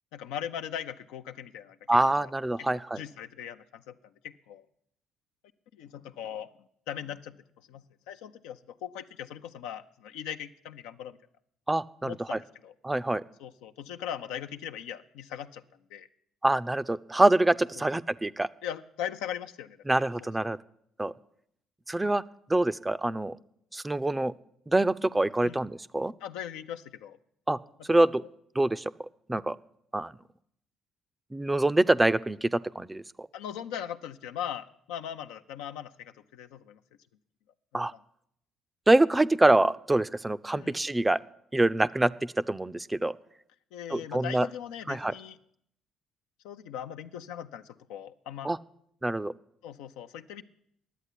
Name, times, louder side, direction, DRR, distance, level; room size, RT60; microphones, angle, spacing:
voice 1, 0.1-1.8 2.2-2.3 2.6-4.7 5.7-6.5 6.9-11.2 12.0-12.7 13.4-15.6 15.9-16.1 17.8-17.9 18.6-19.8 20.2-20.3 25.4-25.6 26.2-27.2 33.3-36.8 37.7-38.0 40.5-40.8 43.7-45.4 46.4-48.5 49.6-50.4, left 9 dB, 85° left, 8 dB, 0.6 m, -39 dB
voice 2, 1.9-3.0 11.7-12.4 12.8-13.2 16.4-18.5 19.9-20.6 21.0-21.1 21.9-22.2 22.5-23.4 23.7-24.3 24.7-26.1 27.5-27.6 27.9-28.2 28.6-29.6 29.9-30.1 31.3-33.3 37.7-37.9 38.9-41.2 41.5-43.1 43.9-44.5 44.9-45.1 48.4-48.6 49.0-49.3, right 2 dB, 15° right, 15 dB, 0.5 m, -25 dB
11.0 x 8.1 x 10.0 m, 0.70 s
supercardioid pair, 65°, 0 cm